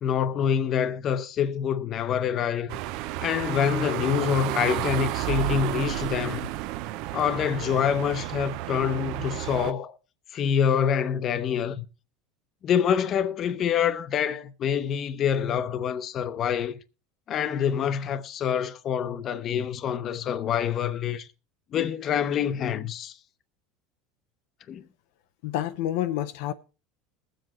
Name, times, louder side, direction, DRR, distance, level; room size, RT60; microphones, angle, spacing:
voice 1, 0.0-2.8 3.2-6.5 7.1-9.9 10.3-11.9 12.6-16.8 17.3-21.3 21.7-23.2 24.7-24.8, left 8 dB, 40° left, 0.7 m, -26 dB
sound 1, 2.7-9.7, right 15 dB, 65° right, 0.5 m, -31 dB
voice 2, 25.4-26.5, left 12 dB, 75° left, 0.6 m, -28 dB
20.5 x 7.7 x 3.0 m
supercardioid pair, 120°, 0 cm